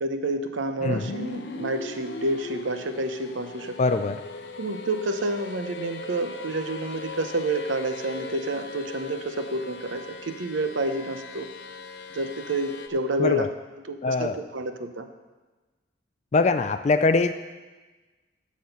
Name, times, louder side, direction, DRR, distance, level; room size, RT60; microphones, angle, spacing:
voice 1, 0.0-3.8 4.6-11.5 12.1-13.5 13.9-15.1, right 2 dB, 80° right, 8 dB, 0.7 m, -29 dB
sound 1, 0.8-12.9, left 3 dB, 65° left, 0.7 m, -39 dB
voice 2, 0.8-1.1 3.8-4.2 13.2-13.5 14.0-14.4 16.3-17.3, left 3 dB, 35° left, 9 dB, 0.3 m, -22 dB
11.5 x 6.4 x 5.6 m, 1.2 s
head